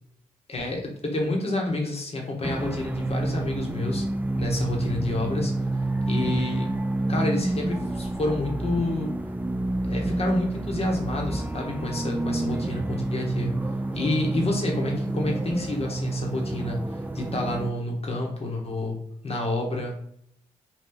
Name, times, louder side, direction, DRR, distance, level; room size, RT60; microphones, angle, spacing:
voice 1, 0.5-4.0 4.4-5.5 6.1-6.7 7.1-9.1 9.8-13.6 13.9-19.0 19.2-20.0, left 2 dB, 45° left, 0 dB, 1.1 m, -29 dB
sound 1, 2.4-17.7, right 2 dB, 10° right, 0.3 m, -29 dB
2.9 x 2.3 x 3.8 m, 0.72 s
supercardioid pair, 40°, 15 cm